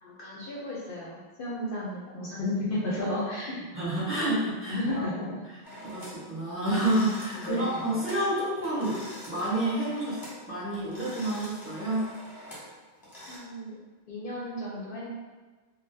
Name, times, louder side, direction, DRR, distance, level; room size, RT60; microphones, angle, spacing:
voice 1, 0.0-3.6 4.7-5.3 7.4-7.8 13.3-13.8 14.1-15.1, left 1 dB, 65° left, -5 dB, 0.7 m, -33 dB
voice 2, 3.7-5.0 5.8-9.0 9.3-10.2 10.5-12.0, right 1 dB, 15° right, -10 dB, 1.0 m, -29 dB
sound 1, 5.6-6.2 6.6-8.3 8.5-10.4 10.7-13.4, equal, 20° left, 0.9 m, -45 dB
3.6 x 2.1 x 2.6 m, 1.3 s
omnidirectional pair, 1.1 m